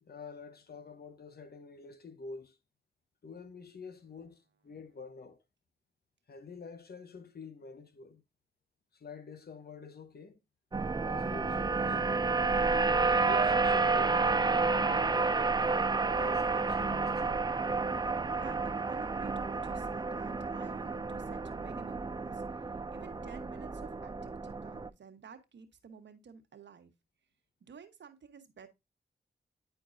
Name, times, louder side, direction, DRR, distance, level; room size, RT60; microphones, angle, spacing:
voice 1, 0.0-2.6 3.2-5.4 6.3-8.2 8.9-10.4 10.9-12.3 13.1-15.4 16.0-17.5, left 4 dB, 60° left, 0.9 m, -47 dB
sound 1, 10.7-24.9, right 4 dB, 20° right, 0.5 m, -30 dB
Piano, 13.3-16.0 16.2-16.6 17.4-17.5, right 7 dB, 55° right, 1.2 m, -45 dB
voice 2, 18.3-26.9 27.6-28.7, right 6 dB, 75° right, 1.1 m, -52 dB
9.9 x 4.5 x 2.5 m
cardioid pair, 50°, 19 cm